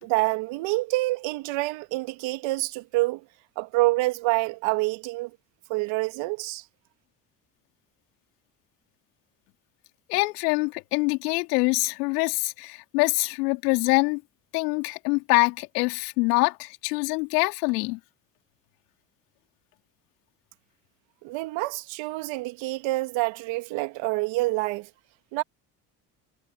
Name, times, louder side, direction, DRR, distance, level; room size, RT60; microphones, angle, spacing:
voice 1, 0.0-3.2 3.6-5.3 5.7-6.6 21.2-24.9 25.3-25.4, right 21 dB, 75° right, 2.4 m, -27 dB
voice 2, 10.1-14.2 14.5-18.0, left 26 dB, 85° left, 3.7 m, -24 dB
hypercardioid pair, 65°, 46 cm